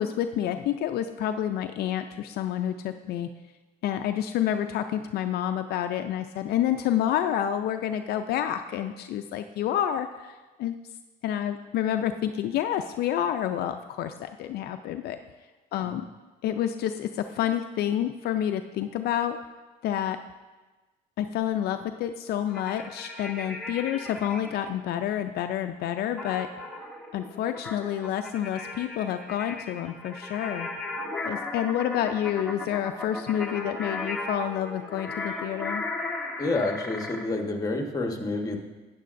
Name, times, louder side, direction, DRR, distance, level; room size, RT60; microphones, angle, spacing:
voice 1, 0.0-3.3 3.8-10.7 11.2-15.2 15.7-16.1 16.4-19.4 19.8-20.2 21.2-26.5 27.1-30.7 31.2-35.8, left 10 dB, 70° left, 7 dB, 0.4 m, -29 dB
sound 1, 22.5-24.6 26.2-37.3, left 2 dB, 5° left, 1.2 m, -36 dB
voice 2, 36.4-38.6, left 2 dB, 20° left, 3 dB, 1.2 m, -28 dB
12.0 x 9.2 x 2.6 m, 1.2 s
cardioid pair, 110°, 17 cm